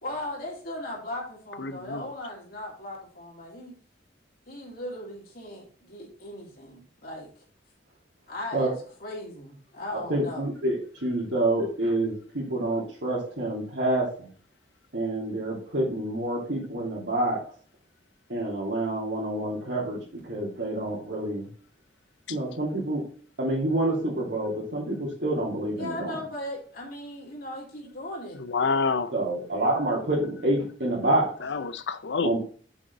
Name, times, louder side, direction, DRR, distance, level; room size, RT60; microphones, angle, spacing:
voice 1, 0.0-3.8 4.5-7.3 8.3-8.7 9.0-10.5 25.8-28.4, left 1 dB, 55° left, 3.0 m, -37 dB
voice 2, 1.6-2.0 22.3-22.4 28.4-29.1 31.4-32.3, left 4 dB, 70° left, 0.6 m, -28 dB
voice 3, 9.9-14.3 14.9-17.4 18.3-21.5 22.3-23.1 23.4-26.2 29.1-31.3 32.2-32.4, right 1 dB, 70° right, 3.0 m, -27 dB
7.2 x 5.3 x 4.0 m
head